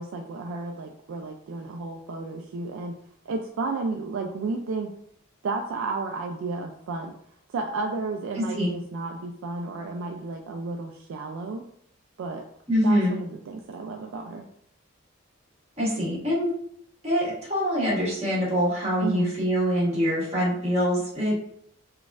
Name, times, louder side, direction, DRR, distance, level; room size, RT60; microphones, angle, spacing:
voice 1, 0.0-2.9 3.3-4.9 5.4-7.1 7.5-11.6 12.2-12.4 12.8-14.4 19.0-19.3, right 3 dB, 65° right, 2 dB, 0.3 m, -32 dB
voice 2, 8.3-8.7 12.7-13.1 15.8-16.5 17.0-21.3, equal, 30° right, -7 dB, 1.5 m, -24 dB
3.9 x 2.4 x 2.4 m, 0.68 s
head